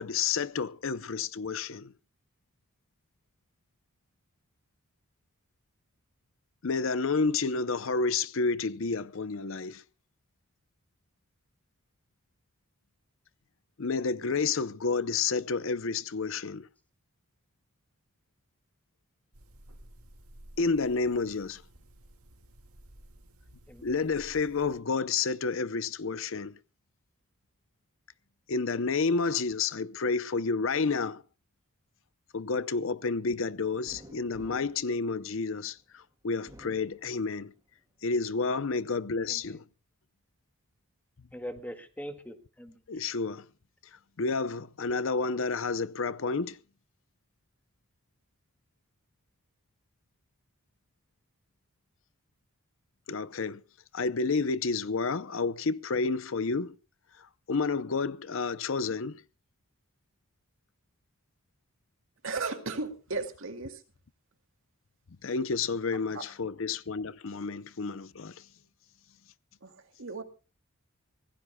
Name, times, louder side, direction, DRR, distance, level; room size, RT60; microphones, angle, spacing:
voice 1, 0.0-1.9 6.6-9.8 13.8-16.7 20.6-21.6 23.8-26.5 28.5-31.2 32.3-37.5 38.0-39.6 42.9-43.5 44.2-46.6 53.1-53.6 53.9-56.8 57.5-59.2 65.2-68.4, left 4 dB, 60° left, 0.6 m, -30 dB
sound 1, 19.3-24.8, right 1 dB, 85° right, 2.0 m, -54 dB
voice 2, 23.7-24.0 39.3-39.6 41.3-42.8, equal, 5° left, 1.9 m, -42 dB
sound 2, 33.9-35.8 36.3-37.7 38.1-39.0, equal, 15° right, 3.1 m, -53 dB
voice 3, 62.2-63.8 66.1-66.2 69.6-70.2, right 3 dB, 65° right, 2.3 m, -35 dB
25.5 x 17.0 x 2.2 m
head